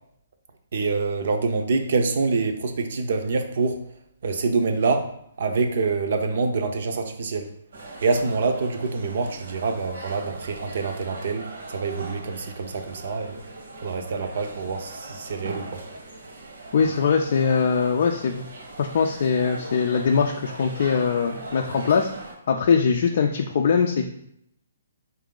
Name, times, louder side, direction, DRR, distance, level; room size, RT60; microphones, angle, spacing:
voice 1, 0.7-3.8 4.2-5.1 5.4-7.5 8.0-13.4 13.8-15.8, right 4 dB, 60° right, 6 dB, 0.6 m, -26 dB
sound 1, 7.7-22.3, right 2 dB, 85° right, 1.1 m, -40 dB
voice 2, 16.7-18.4 18.8-22.1 22.5-24.0, left 6 dB, 55° left, 2 dB, 0.4 m, -22 dB
4.9 x 2.7 x 3.7 m, 0.73 s
hypercardioid pair, 150°, 0 cm